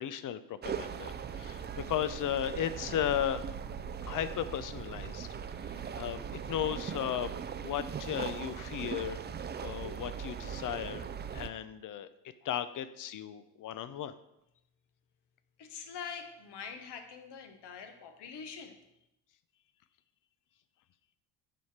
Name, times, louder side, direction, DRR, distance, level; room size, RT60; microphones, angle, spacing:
voice 1, 0.0-3.5 4.1-5.3 5.7-7.3 7.6-9.2 9.6-11.1 11.3-12.1 12.4-14.1, left 10 dB, 45° left, 13 dB, 0.6 m, -35 dB
sound 1, 0.6-11.5, right 7 dB, 25° right, 0.4 m, -40 dB
voice 2, 15.6-18.8, left 6 dB, 60° left, 6 dB, 1.2 m, -44 dB
7.8 x 4.9 x 4.3 m, 0.85 s
supercardioid pair, 80°, 45 cm